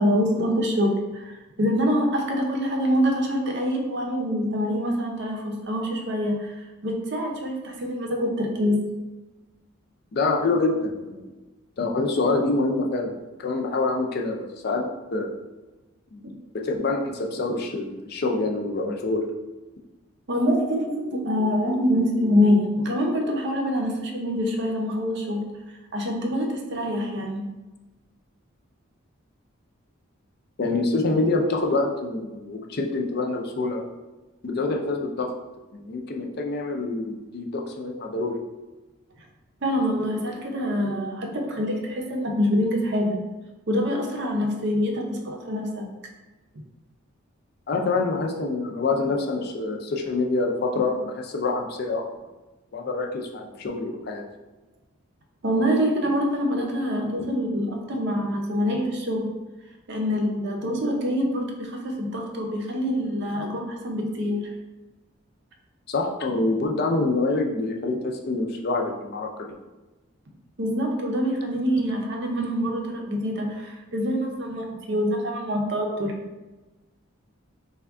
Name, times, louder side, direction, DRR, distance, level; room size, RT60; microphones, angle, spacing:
voice 1, 0.0-8.8 20.3-25.4 25.9-27.4 39.6-43.2 43.7-45.8 55.4-59.3 59.9-64.5 70.6-76.1, equal, 55° right, 1 dB, 0.6 m, -25 dB
voice 2, 10.1-11.3 11.8-13.1 13.4-14.8 15.1-15.3 16.1-16.2 16.6-19.2 30.6-33.8 34.4-35.3 35.8-38.4 47.7-52.0 52.7-54.2 65.9-69.5, left 3 dB, 45° left, 2 dB, 0.4 m, -26 dB
3.4 x 2.2 x 3.5 m, 1.1 s
head